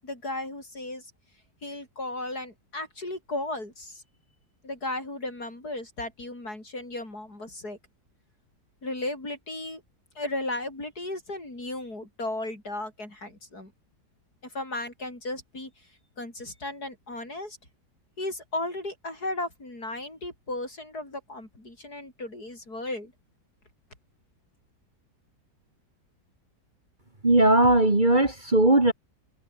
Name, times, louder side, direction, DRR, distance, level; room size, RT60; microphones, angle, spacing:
voice 1, 0.0-1.1 1.6-4.0 4.6-7.8 8.8-9.8 10.1-13.7 14.4-15.7 16.2-17.6 18.2-23.1, left 2 dB, 60° left, 8.3 m, -35 dB
voice 2, 27.2-28.9, right 2 dB, 25° right, 2.8 m, -19 dB
omnidirectional pair, 1.8 m